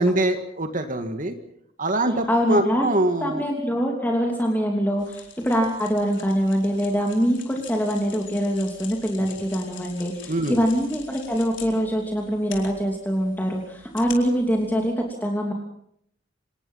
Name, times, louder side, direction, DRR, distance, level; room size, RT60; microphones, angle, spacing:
voice 1, 0.0-1.3 1.8-3.4 10.3-10.6, right 1 dB, 45° right, 7 dB, 1.9 m, -23 dB
voice 2, 2.3-2.9 3.2-15.5, equal, 10° left, 1 dB, 3.0 m, -24 dB
sound 1, 5.0-14.9, left 8 dB, 70° left, 4.5 m, -45 dB
27.0 x 19.5 x 5.7 m, 0.69 s
head